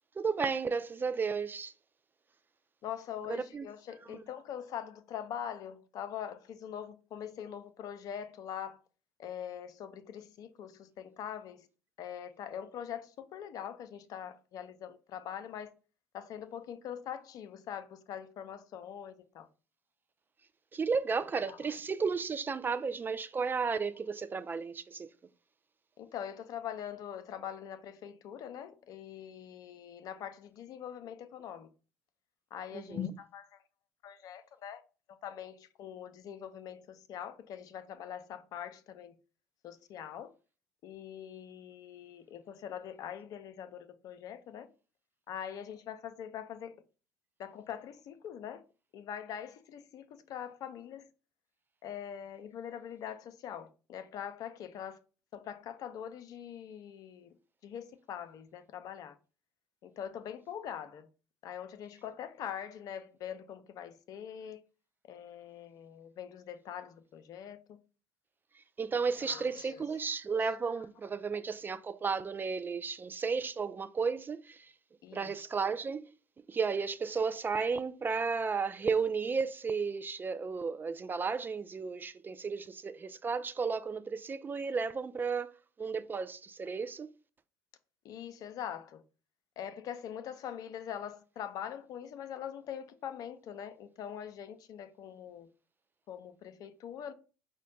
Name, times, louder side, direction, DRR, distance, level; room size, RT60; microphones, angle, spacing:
voice 1, 0.2-1.7 3.3-3.7 20.7-25.1 32.7-33.0 68.8-74.7 75.1-76.1 76.5-85.5 85.8-87.1, right 5 dB, 25° right, 0.3 m, -33 dB
voice 2, 2.8-8.8 9.2-11.7 12.0-15.8 16.1-19.5 21.5-21.8 26.0-31.7 32.5-33.6 34.0-34.8 35.1-39.1 39.6-40.3 40.8-44.7 45.3-46.8 47.4-48.6 48.9-51.1 51.8-55.0 55.3-57.3 57.6-59.1 59.8-61.1 61.4-64.6 65.1-67.8 69.1-70.0 70.4-70.5 75.0-75.3 88.0-89.0 89.6-95.5 96.1-97.1, left 9 dB, 55° left, 0.5 m, -43 dB
5.1 x 2.1 x 3.8 m
hypercardioid pair, 60°, 7 cm